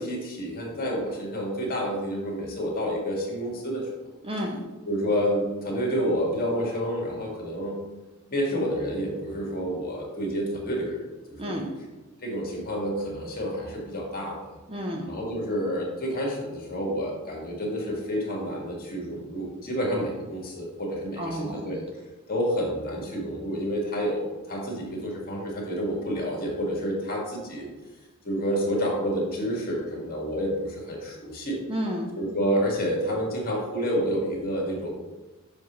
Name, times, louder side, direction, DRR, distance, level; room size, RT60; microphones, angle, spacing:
voice 1, 0.0-3.9 4.9-7.8 8.3-11.5 12.2-14.4 15.1-21.8 22.3-27.7 28.2-31.6 32.2-34.9, equal, 45° left, -2 dB, 1.9 m, -29 dB
voice 2, 4.2-4.6 11.4-11.7 14.7-15.1 21.2-21.7 31.7-32.1, equal, 25° right, 1 dB, 0.7 m, -31 dB
7.0 x 5.6 x 3.1 m, 1.2 s
head